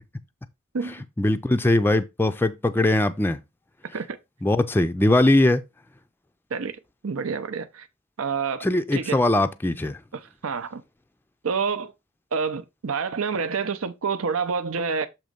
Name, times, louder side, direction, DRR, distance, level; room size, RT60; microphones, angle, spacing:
voice 1, 1.2-3.4 4.4-5.6 8.6-10.0, left 1 dB, 10° left, 0.4 m, -21 dB
voice 2, 7.0-7.9 8.2-8.7 8.9-9.2 10.1-10.8 11.4-11.9 12.3-15.1, right 5 dB, 85° right, 0.7 m, -28 dB
7.5 x 3.0 x 5.1 m
head